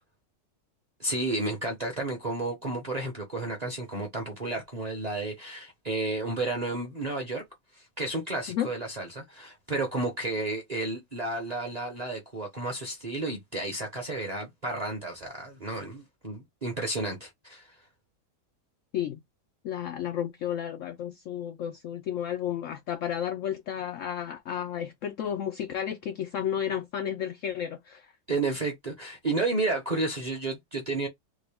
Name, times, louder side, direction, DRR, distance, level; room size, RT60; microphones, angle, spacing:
voice 1, 1.0-7.4 8.0-17.6 28.3-31.1, right 2 dB, 35° right, 0.7 m, -32 dB
voice 2, 19.6-28.1, left 9 dB, 80° left, 0.7 m, -32 dB
3.7 x 2.2 x 3.4 m
omnidirectional pair, 1.9 m